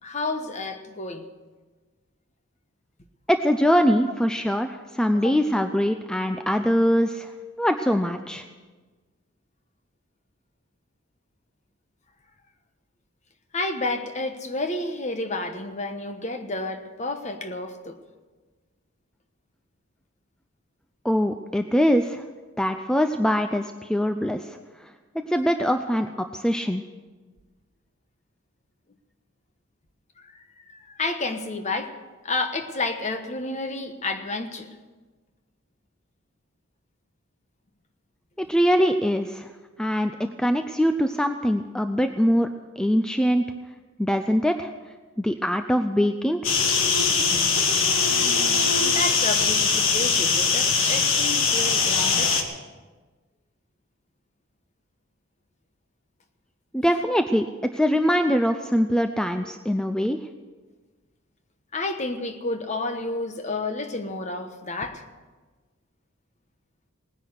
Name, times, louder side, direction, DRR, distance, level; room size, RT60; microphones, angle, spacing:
voice 1, 0.0-1.3 5.1-5.4 13.5-18.0 30.2-31.9 32.2-34.7 48.1-52.3 61.7-65.0, left 2 dB, 35° left, 7 dB, 1.1 m, -31 dB
voice 2, 3.3-7.3 7.6-8.4 21.0-22.2 22.6-26.8 38.4-39.5 39.8-42.5 42.8-43.4 44.0-44.7 45.2-46.5 56.7-60.2, equal, 5° left, 7 dB, 0.4 m, -23 dB
sound 1, 46.4-52.4, left 5 dB, 75° left, 1.7 m, -21 dB
18.5 x 10.0 x 6.5 m, 1.3 s
head